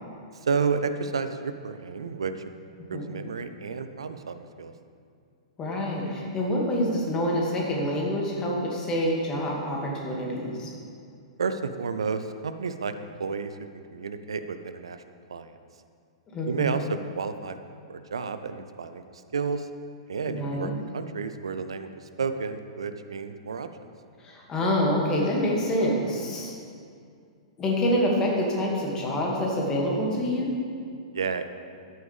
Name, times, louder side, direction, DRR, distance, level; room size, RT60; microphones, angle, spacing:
voice 1, 0.4-2.3 2.9-4.7 11.4-12.9 13.2-13.5 13.9-15.0 15.3-15.5 16.5-17.6 17.9-19.0 19.3-19.7 20.1-23.9 31.1-31.5, right 5 dB, 65° right, 10 dB, 0.6 m, -31 dB
voice 2, 5.6-10.7 16.3-16.8 20.3-20.7 24.2-26.5 27.6-30.5, equal, 20° left, -2 dB, 2.3 m, -26 dB
13.5 x 9.3 x 3.5 m, 2.3 s
figure-of-eight pair, 105°, 3 cm